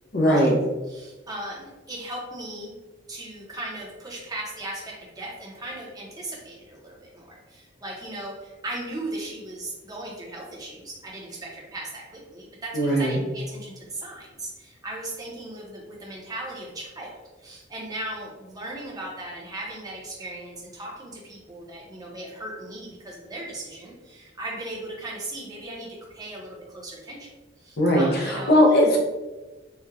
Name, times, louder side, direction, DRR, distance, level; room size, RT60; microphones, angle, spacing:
voice 1, 0.1-0.5 12.7-13.2 27.8-29.0, equal, 60° left, -1 dB, 0.8 m, -19 dB
voice 2, 0.9-2.7 3.1-27.3 27.6-28.6, right 1 dB, 20° right, -3 dB, 0.8 m, -37 dB
4.0 x 2.4 x 2.6 m, 1.1 s
head